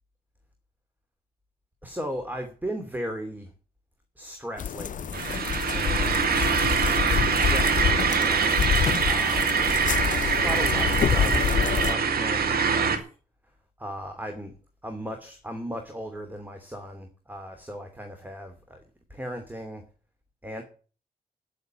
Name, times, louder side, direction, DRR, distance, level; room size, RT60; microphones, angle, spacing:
voice 1, 1.8-3.5 4.2-5.2 5.7-6.4 6.9-8.7 9.0-9.8 10.4-13.0 13.8-14.6 14.8-18.8 19.1-19.8 20.4-20.6, equal, 10° right, 6 dB, 2.8 m, -37 dB
sound 1, 4.6-11.9, left 8 dB, 55° left, 0.5 m, -27 dB
sound 2, 5.1-13.0, right 6 dB, 80° right, 2.3 m, -24 dB
9.9 x 8.2 x 9.2 m, 0.38 s
cardioid pair, 80°, 16 cm